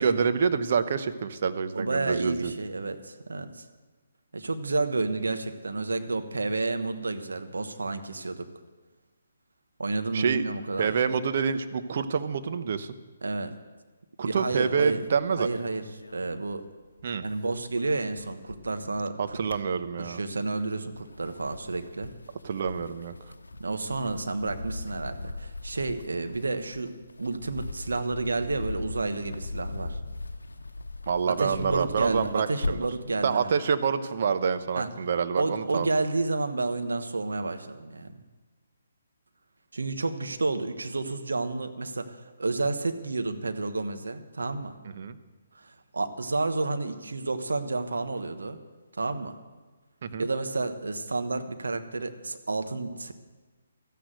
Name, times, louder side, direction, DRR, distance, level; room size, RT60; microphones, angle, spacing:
voice 1, 0.0-2.5 10.1-10.5 10.8-12.9 14.2-15.5 17.0-17.2 19.2-20.2 22.4-23.1 31.1-32.8 33.2-35.9 44.9-45.2 50.0-50.3, right 6 dB, 50° right, 10 dB, 0.9 m, -27 dB
voice 2, 1.7-3.6 4.3-8.5 9.8-10.9 13.2-13.5 14.2-15.0 15.4-15.9 16.1-16.6 17.2-19.4 20.0-22.1 23.6-30.0 31.3-33.6 34.7-35.1 35.4-38.1 39.7-44.8 45.5-48.6 49.0-49.4 50.2-53.1, right 3 dB, 75° right, 8 dB, 1.3 m, -30 dB
sound 1, 14.8-17.0 17.3-18.9 19.2-20.3 20.8-33.0, left 2 dB, 80° left, 0.8 m, -40 dB
13.5 x 10.0 x 7.8 m, 1.3 s
figure-of-eight pair, 140°, 0 cm